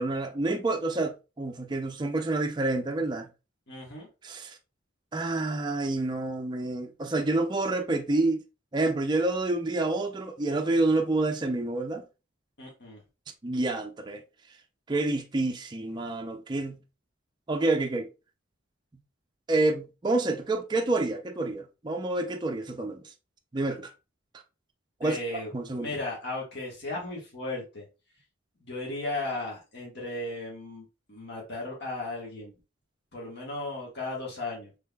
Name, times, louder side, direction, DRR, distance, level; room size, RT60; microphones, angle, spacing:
voice 1, 0.0-3.3 4.2-4.6 5.1-8.4 8.7-12.0 13.4-14.2 14.9-16.8 17.5-18.1 19.5-23.0 23.5-23.9 25.0-25.9, right 2 dB, 20° right, 0.4 m, -28 dB
voice 2, 3.7-4.1 12.6-13.0 25.0-25.5 25.8-27.8 28.7-32.5 33.1-34.7, left 2 dB, 55° left, 1.4 m, -35 dB
3.6 x 3.3 x 2.2 m
head